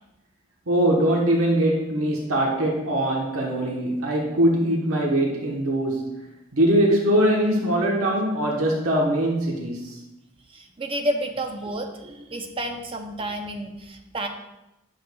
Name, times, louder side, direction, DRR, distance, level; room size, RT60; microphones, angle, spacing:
voice 1, 0.7-6.2 6.5-10.0, right 1 dB, 85° right, -1 dB, 1.2 m, -22 dB
voice 2, 10.5-14.3, right 1 dB, 25° right, 4 dB, 0.6 m, -30 dB
10.0 x 6.6 x 2.3 m, 0.96 s
head